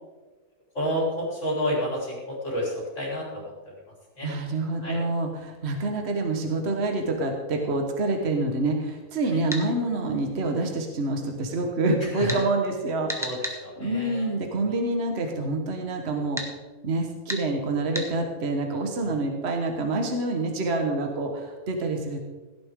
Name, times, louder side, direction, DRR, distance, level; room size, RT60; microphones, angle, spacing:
voice 1, 0.7-3.4 4.2-4.3 4.8-5.0 9.3-9.4 12.2-12.4 13.2-14.3 14.6-14.7, equal, 50° left, -5 dB, 4.9 m, -30 dB
voice 2, 4.2-13.3 13.8-16.4 16.8-22.2, right 2 dB, 45° right, 3 dB, 1.6 m, -27 dB
sound 1, 9.5-9.7 12.3-12.4 13.1-13.6 16.4-16.5 17.3-17.4 17.9-18.1, equal, ahead, 1.4 m, -31 dB
16.5 x 10.5 x 3.8 m, 1.2 s
omnidirectional pair, 1.7 m